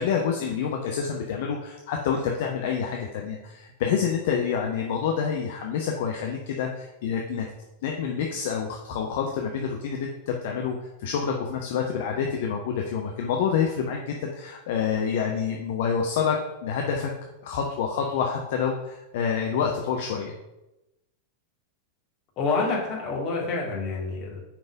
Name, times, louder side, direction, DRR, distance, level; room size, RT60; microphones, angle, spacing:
voice 1, 0.0-7.5 7.8-17.1 17.4-20.3, left 7 dB, 55° left, 1 dB, 0.8 m, -27 dB
voice 2, 22.4-24.4, left 3 dB, 35° left, -2 dB, 2.4 m, -27 dB
5.8 x 5.2 x 5.2 m, 0.95 s
figure-of-eight pair, 90°, 0 cm